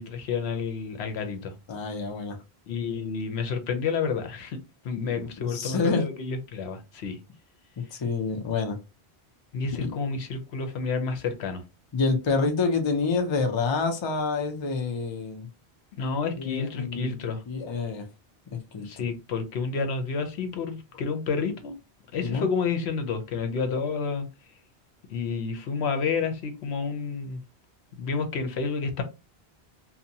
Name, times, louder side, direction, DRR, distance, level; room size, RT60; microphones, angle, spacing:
voice 1, 0.0-1.5 2.7-4.6 4.8-7.2 9.5-11.6 15.9-17.4 18.8-21.8 22.1-24.3 25.1-27.4 28.0-29.0, left 5 dB, 75° left, 0.9 m, -30 dB
voice 2, 1.7-2.4 5.0-6.0 7.8-8.8 9.8-9.9 11.9-15.5 16.4-18.1 18.5-19.0 22.2-22.5, left 4 dB, 35° left, 0.5 m, -28 dB
2.7 x 2.2 x 2.7 m
omnidirectional pair, 1.1 m